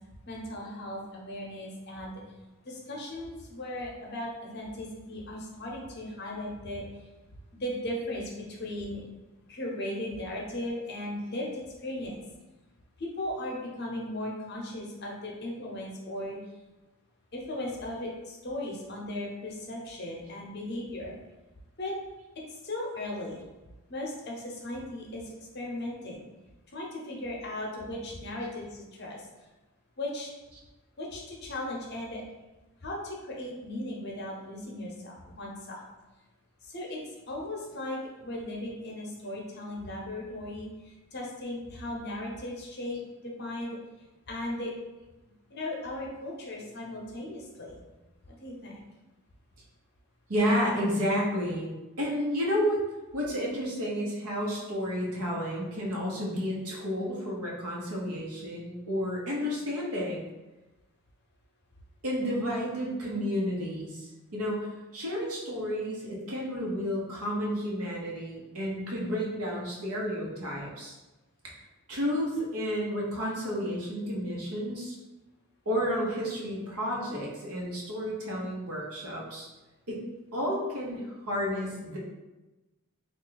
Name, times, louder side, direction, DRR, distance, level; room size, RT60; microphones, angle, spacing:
voice 1, 0.3-2.2 2.6-6.9 7.5-9.1 9.5-12.2 13.0-16.4 17.3-21.1 21.8-21.9 22.5-23.4 23.9-26.3 26.7-29.3 30.0-30.3 31.0-32.2 32.8-35.8 36.6-43.7 44.3-44.7 45.5-47.8 48.3-48.8, left 1 dB, 45° left, -2 dB, 0.7 m, -37 dB
voice 2, 50.3-52.8 53.1-60.2 62.0-64.7 64.9-70.9 71.9-75.0 75.7-79.5 79.9-80.0 80.3-82.0, equal, 85° right, -3 dB, 1.0 m, -31 dB
3.3 x 2.4 x 3.8 m, 1.1 s
head